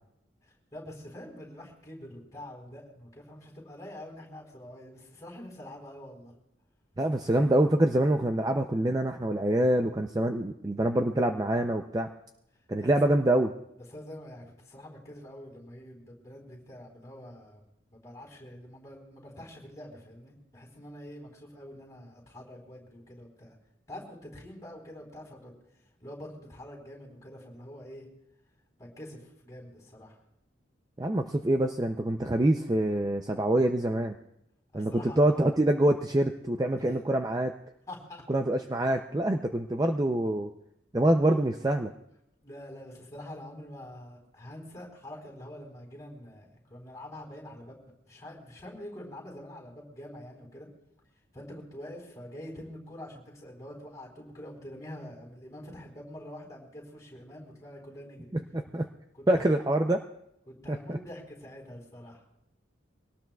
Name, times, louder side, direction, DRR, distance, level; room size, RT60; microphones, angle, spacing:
voice 1, 0.4-6.3 12.8-12.9 13.9-23.5 23.9-25.5 26.0-28.1 28.8-30.2 34.7-35.5 36.8-37.0 37.9-38.2 42.4-50.7 51.3-58.3 59.1-59.6 60.5-62.2, left 1 dB, 15° left, 0 dB, 4.0 m, -46 dB
voice 2, 7.0-12.1 12.7-13.5 31.0-34.1 34.7-37.5 38.3-40.5 40.9-41.9 58.5-58.9 59.3-60.0 60.7-61.0, right 1 dB, 20° right, 4 dB, 0.5 m, -25 dB
24.0 x 18.5 x 2.3 m, 0.80 s
head